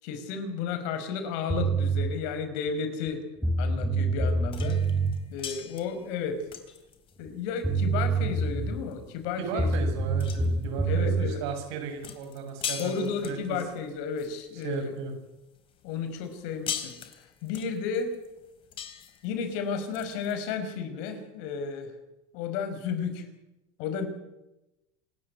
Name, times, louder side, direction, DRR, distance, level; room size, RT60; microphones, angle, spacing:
voice 1, 0.0-3.2 3.6-4.8 5.3-6.4 7.2-9.7 10.9-11.4 12.8-15.0 15.8-18.1 19.2-21.9 22.3-23.3 23.8-24.1, left 6 dB, 70° left, 8 dB, 5.2 m, -33 dB
sound 1, 1.5-2.1 3.1-3.2 3.4-5.1 7.3-7.4 7.6-8.8 9.6-11.3, right 3 dB, ahead, 3.1 m, -26 dB
sound 2, 4.5-15.1 15.6-20.3, left 8 dB, 40° left, 3.6 m, -41 dB
voice 2, 9.4-13.6 14.6-15.1, right 5 dB, 80° right, 5 dB, 7.5 m, -35 dB
26.5 x 13.0 x 9.6 m, 0.96 s
supercardioid pair, 125°, 14 cm